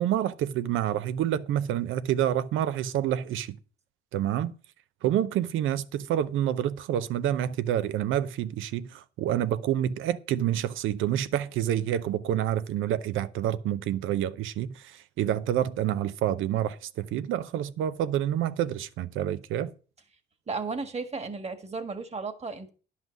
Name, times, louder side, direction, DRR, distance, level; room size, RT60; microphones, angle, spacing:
voice 1, 0.0-3.6 4.1-4.5 5.0-19.7, right 11 dB, 85° right, 0.7 m, -28 dB
voice 2, 20.5-22.7, right 4 dB, 35° right, 1.7 m, -34 dB
11.0 x 5.8 x 6.0 m
cardioid pair, 90°, 20 cm